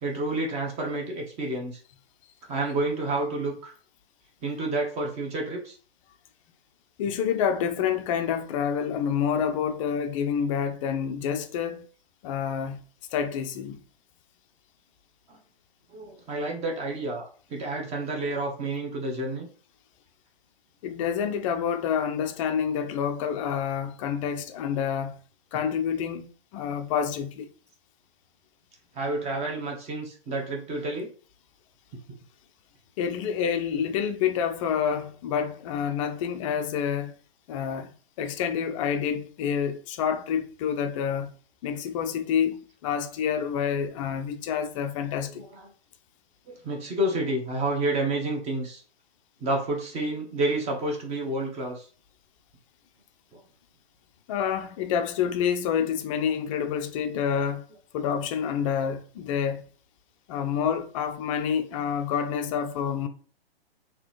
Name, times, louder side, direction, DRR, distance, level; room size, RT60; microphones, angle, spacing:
voice 1, 0.0-1.8 2.5-3.7 4.4-5.8 15.3-15.4 15.9-19.5 28.9-31.1 45.3-45.7 46.5-48.8 49.4-51.9 53.3-53.4, right 2 dB, 20° right, 1.1 m, -29 dB
voice 2, 7.0-11.8 12.2-12.8 13.1-13.8 20.8-25.2 25.5-27.5 33.0-37.1 37.5-37.9 38.2-41.4 41.6-45.5 54.3-57.6 57.9-59.6 60.3-63.1, left 7 dB, 35° left, 0.5 m, -28 dB
3.8 x 2.9 x 3.1 m
hypercardioid pair, 130°, 31 cm